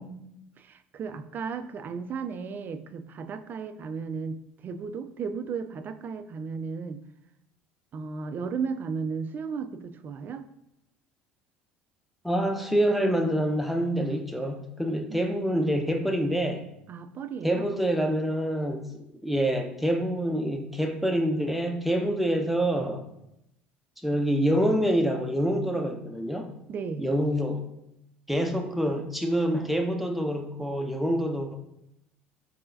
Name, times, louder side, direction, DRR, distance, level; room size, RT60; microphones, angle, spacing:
voice 1, 0.0-7.0 7.9-10.5 15.1-15.4 16.9-17.7 26.7-27.0, right 5 dB, 35° right, 10 dB, 0.4 m, -35 dB
voice 2, 12.2-16.6 17.4-23.0 24.0-26.5 27.0-27.7 28.3-31.6, equal, ahead, 4 dB, 0.7 m, -26 dB
4.7 x 3.7 x 2.6 m, 0.83 s
figure-of-eight pair, 65°, 5 cm